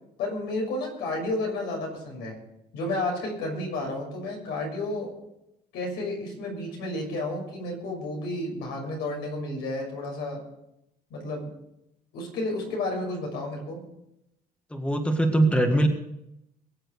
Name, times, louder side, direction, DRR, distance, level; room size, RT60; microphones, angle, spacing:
voice 1, 0.2-2.4 2.7-5.1 5.7-10.4 11.1-11.5 12.1-13.8, left 2 dB, 80° left, 0 dB, 6.4 m, -31 dB
voice 2, 14.7-15.9, right 1 dB, 5° left, 5 dB, 1.7 m, -22 dB
22.0 x 7.7 x 6.5 m, 0.82 s
cardioid pair, 110°, 17 cm